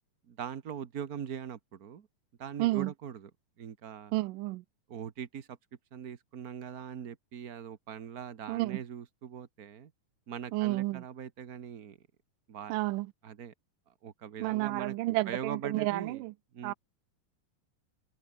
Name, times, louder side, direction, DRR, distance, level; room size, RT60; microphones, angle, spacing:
voice 1, 0.3-2.1 2.4-3.3 3.6-4.1 4.9-5.6 5.9-9.9 10.3-12.0 12.5-12.8 13.2-13.5 13.9-16.2 16.5-16.7, right 8 dB, 70° right, 0.8 m, -41 dB
voice 2, 2.6-2.9 4.1-4.6 8.5-8.8 10.5-11.0 12.7-13.1 14.4-16.3 16.6-16.7, right 19 dB, 85° right, 2.3 m, -31 dB
omnidirectional pair, 3.7 m